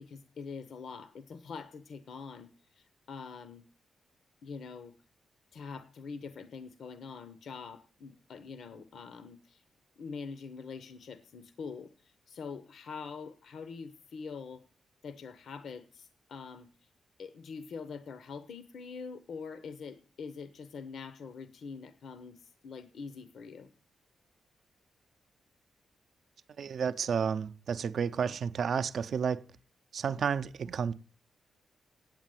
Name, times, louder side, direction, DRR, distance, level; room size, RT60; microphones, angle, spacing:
voice 1, 0.0-3.6 4.4-4.9 5.5-9.6 10.0-14.7 15.0-16.7 17.2-23.7, left 5 dB, 60° left, 0.7 m, -44 dB
voice 2, 26.6-29.4 29.9-30.9, right 6 dB, 55° right, 0.5 m, -31 dB
8.9 x 8.2 x 7.6 m
wide cardioid pair, 165°, 0 cm